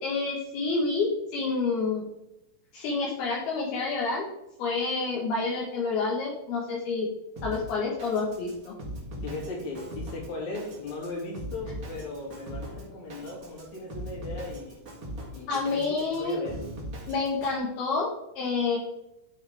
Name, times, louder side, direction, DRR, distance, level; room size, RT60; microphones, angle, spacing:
voice 1, 0.0-2.0 2.7-4.3 4.6-7.1 7.4-8.7 15.5-16.4 17.1-18.1 18.4-18.8, left 4 dB, 75° left, -3 dB, 3.3 m, -28 dB
Drum kit, 7.4-17.6, equal, 60° right, 0.9 m, -40 dB
voice 2, 9.2-14.8 15.3-16.6, left 2 dB, 50° left, -2 dB, 3.8 m, -37 dB
11.5 x 6.3 x 3.6 m, 0.87 s
omnidirectional pair, 4.7 m